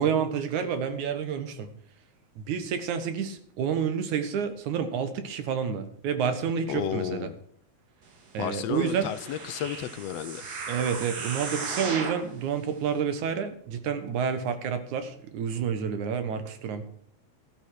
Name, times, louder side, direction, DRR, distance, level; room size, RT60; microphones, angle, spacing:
voice 1, 0.0-1.7 2.4-7.3 8.3-9.1 10.7-16.8, right 7 dB, 85° right, 9 dB, 2.8 m, -29 dB
voice 2, 6.7-7.4 8.4-10.5, left 10 dB, 75° left, 12 dB, 1.7 m, -33 dB
sound 1, 8.7-12.3 12.9-13.0, right 4 dB, 40° right, 1.8 m, -36 dB
13.5 x 12.5 x 4.8 m, 0.63 s
omnidirectional pair, 3.3 m